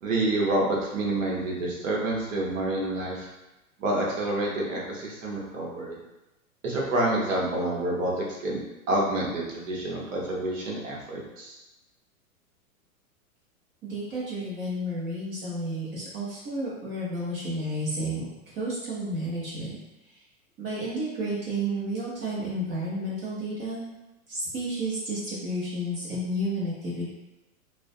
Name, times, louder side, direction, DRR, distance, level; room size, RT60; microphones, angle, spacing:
voice 1, 0.0-3.3 3.8-6.0 6.6-8.6 8.9-11.6, right 1 dB, 60° right, -3 dB, 1.0 m, -28 dB
voice 2, 13.8-19.8 20.6-23.8 24.3-27.1, right 1 dB, 30° right, -7 dB, 0.7 m, -31 dB
2.4 x 2.2 x 2.5 m, 1.0 s
hypercardioid pair, 105°, 43 cm